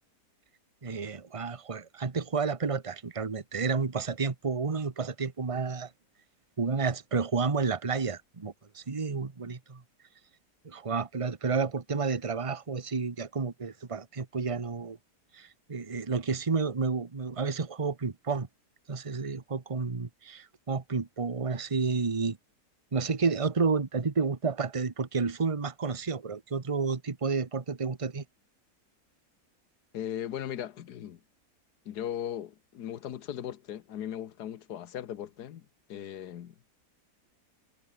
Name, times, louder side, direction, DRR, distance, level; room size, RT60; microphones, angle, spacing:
voice 1, 0.8-5.9 6.6-9.8 10.6-15.0 15.3-18.5 18.9-22.4 22.9-28.2, right 4 dB, 20° right, 1.2 m, -31 dB
voice 2, 29.9-31.2 31.8-36.5, left 10 dB, 75° left, 1.6 m, -38 dB
omnidirectional pair, 1.7 m